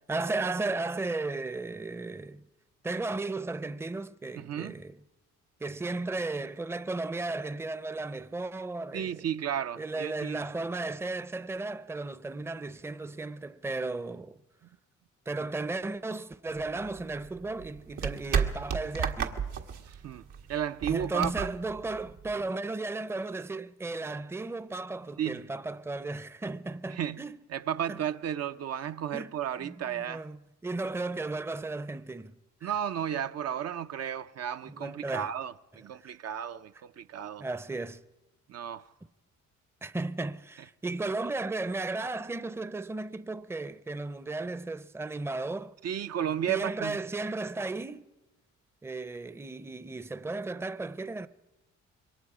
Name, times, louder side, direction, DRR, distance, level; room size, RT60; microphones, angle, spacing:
voice 1, 0.1-2.4 2.8-5.0 5.6-9.3 9.8-14.4 15.3-19.4 20.8-27.4 27.9-28.0 29.1-29.3 29.6-32.3 32.6-32.7 34.7-35.3 36.0-36.1 37.4-38.0 39.8-45.7 46.5-48.0 48.8-51.3, right 3 dB, 10° right, 0.6 m, -35 dB
voice 2, 4.4-4.8 8.9-10.4 19.9-20.2 20.5-21.5 25.2-25.5 26.9-27.2 27.5-30.2 32.6-37.5 38.5-38.9 45.8-47.0, right 9 dB, 55° right, 0.6 m, -33 dB
sound 1, 16.5-22.5, right 7 dB, 85° right, 1.7 m, -34 dB
26.5 x 22.5 x 4.9 m
cardioid pair, 90°, 30 cm